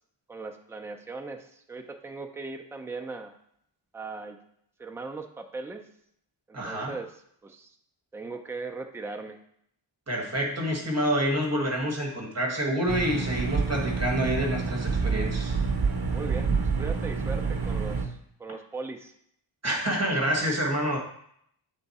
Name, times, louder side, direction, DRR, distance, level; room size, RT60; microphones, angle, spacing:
voice 1, 0.3-3.3 3.9-4.4 4.8-5.8 6.5-7.1 7.4-7.8 8.1-9.4 16.1-19.1, right 3 dB, 5° right, 5 dB, 0.4 m, -39 dB
voice 2, 6.5-7.0 10.1-15.5 19.6-21.0, equal, 30° right, 0 dB, 1.4 m, -27 dB
sound 1, 12.9-18.1, right 4 dB, 50° right, 0.8 m, -28 dB
7.7 x 3.6 x 4.1 m, 0.70 s
wide cardioid pair, 160°, 48 cm